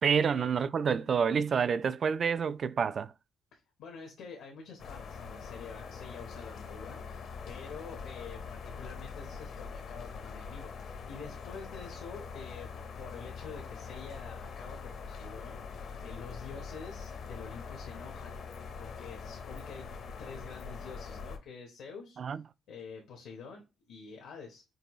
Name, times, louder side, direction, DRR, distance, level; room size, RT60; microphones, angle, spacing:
voice 1, 0.0-3.1 22.2-22.4, right 6 dB, 50° right, 0.3 m, -28 dB
voice 2, 3.5-18.3 18.8-19.9 20.2-22.2 22.7-24.6, left 5 dB, 85° left, 1.1 m, -47 dB
sound 1, 4.8-21.4, left 5 dB, 65° left, 0.8 m, -43 dB
5.3 x 2.4 x 3.1 m
cardioid pair, 90°, 0 cm